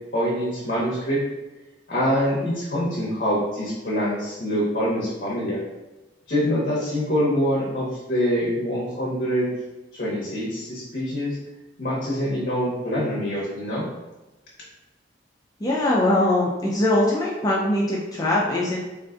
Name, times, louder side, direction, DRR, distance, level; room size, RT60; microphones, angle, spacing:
voice 1, 0.1-1.2 1.9-5.6 6.3-9.5 9.9-11.4 11.8-13.8, equal, 50° left, -5 dB, 0.7 m, -25 dB
voice 2, 15.6-18.8, left 1 dB, 20° left, -4 dB, 0.3 m, -21 dB
3.7 x 2.4 x 2.4 m, 1.1 s
head